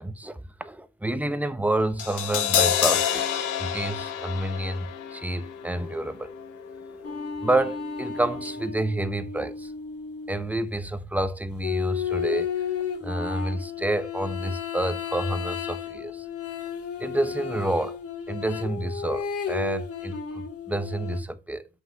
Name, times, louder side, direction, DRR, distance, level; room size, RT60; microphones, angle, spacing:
voice 1, 0.0-3.3 3.6-6.3 6.9-9.7 10.3-12.5 13.0-16.3 17.0-18.0 18.3-21.7, right 1 dB, 5° right, 0.8 m, -29 dB
Crash cymbal, 2.0-8.2 8.4-8.6, left 9 dB, 90° left, 1.6 m, -29 dB
sound 1, 7.0-10.5 11.6-21.2, left 7 dB, 50° left, 2.3 m, -33 dB
5.8 x 5.7 x 5.8 m
cardioid pair, 90°, 30 cm